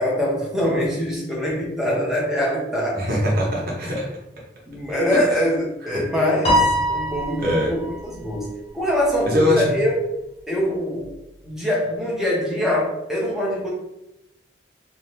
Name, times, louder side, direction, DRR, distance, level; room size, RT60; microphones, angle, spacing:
voice 1, 0.0-3.0 4.7-8.5 8.7-9.9 10.5-11.1 11.4-13.7, equal, ahead, -4 dB, 0.8 m, -23 dB
voice 2, 2.9-4.1 5.1-5.2 7.4-7.7 9.3-9.7, left 1 dB, 55° right, -3 dB, 0.9 m, -21 dB
Piano, 6.4-8.0, equal, 35° left, 0.8 m, -21 dB
2.7 x 2.2 x 3.0 m, 0.86 s
head